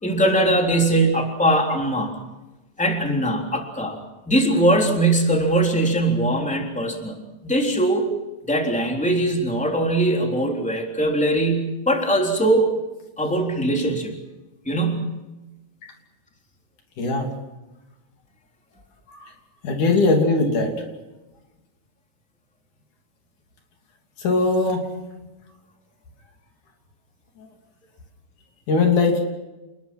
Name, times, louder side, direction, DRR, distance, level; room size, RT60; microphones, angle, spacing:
voice 1, 0.0-2.1 2.8-3.9 4.3-7.2 7.4-8.1 8.5-12.7 13.2-14.1 14.6-15.1, right 1 dB, ahead, 2 dB, 3.3 m, -21 dB
voice 2, 17.0-17.3 19.1-19.3 19.6-20.7 24.2-24.8 28.7-29.2, left 3 dB, 85° left, 3 dB, 4.5 m, -20 dB
28.5 x 20.5 x 6.1 m, 1.1 s
omnidirectional pair, 3.4 m